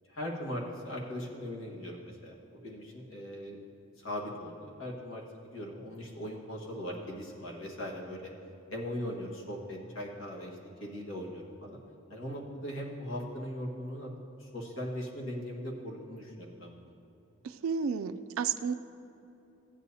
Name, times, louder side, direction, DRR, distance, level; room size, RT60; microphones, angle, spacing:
voice 1, 0.1-3.6 4.0-8.3 8.7-11.8 12.1-14.1 14.4-16.9, equal, 75° left, -2 dB, 1.5 m, -39 dB
voice 2, 17.4-18.7, right 6 dB, 85° right, 10 dB, 0.4 m, -32 dB
15.0 x 9.0 x 2.7 m, 2.8 s
head